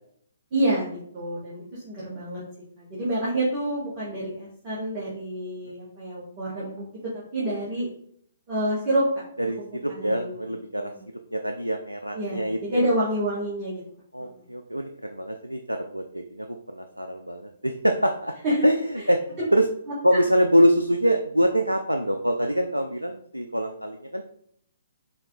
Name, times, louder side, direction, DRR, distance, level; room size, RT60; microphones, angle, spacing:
voice 1, 0.5-2.4 2.8-6.8 7.3-7.9 8.5-9.1 9.9-10.4 10.8-11.0 12.1-13.8 14.3-14.4 18.4-18.7 19.0-19.1 19.4-19.5 20.1-20.2, right 1 dB, 30° right, -7 dB, 1.2 m, -28 dB
voice 2, 9.4-10.9 11.3-12.8 14.1-18.3 18.6-19.2 19.5-19.7 20.0-24.2, equal, 85° right, 5 dB, 0.4 m, -24 dB
4.6 x 2.9 x 3.6 m, 0.66 s
figure-of-eight pair, 125°, 0 cm